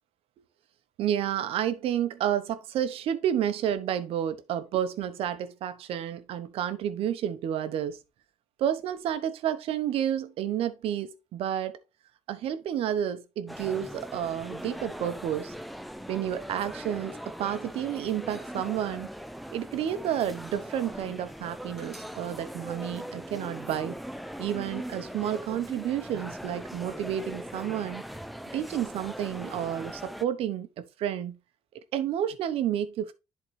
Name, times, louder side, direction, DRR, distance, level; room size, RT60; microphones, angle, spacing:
voice 1, 1.0-8.0 8.6-11.8 12.3-15.5 16.1-19.1 19.5-24.0 24.4-28.0 28.5-31.4 31.7-33.1, right 10 dB, 75° right, 0.9 m, -30 dB
Coffeehouse Ambience, 13.5-30.2, equal, ahead, 0.5 m, -40 dB
11.0 x 3.8 x 3.2 m
cardioid pair, 125°, 10 cm